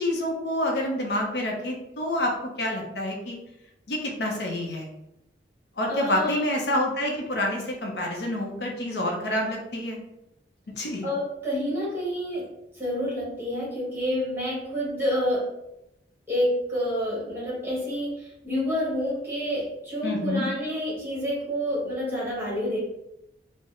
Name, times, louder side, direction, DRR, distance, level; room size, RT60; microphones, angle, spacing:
voice 1, 0.0-2.3 2.6-3.4 3.9-4.9 5.8-10.0 10.7-11.1 20.0-20.5, left 1 dB, 65° left, 0 dB, 0.6 m, -28 dB
voice 2, 5.9-6.5 11.0-12.5 12.7-15.5 16.3-22.8, equal, 10° right, -6 dB, 1.2 m, -28 dB
3.1 x 2.0 x 3.7 m, 0.85 s
head